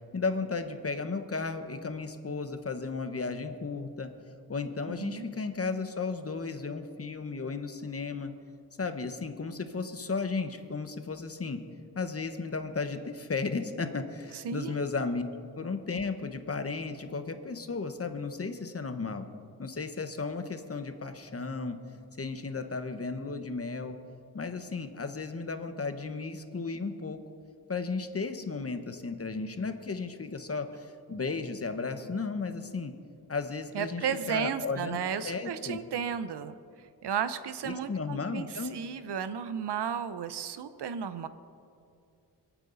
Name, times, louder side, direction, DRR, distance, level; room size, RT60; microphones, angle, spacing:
voice 1, 0.1-4.1 4.5-8.3 8.8-11.6 11.9-15.2 15.5-19.3 19.6-21.8 22.2-24.0 24.3-27.2 27.7-32.9 33.3-35.0 35.2-35.8 37.6-38.8, left 4 dB, 35° left, 8 dB, 1.2 m, -34 dB
voice 2, 4.9-5.2 14.3-14.8 33.7-41.3, right 8 dB, 85° right, 12 dB, 0.8 m, -34 dB
27.0 x 9.1 x 4.1 m, 2.4 s
cardioid pair, 70°, 39 cm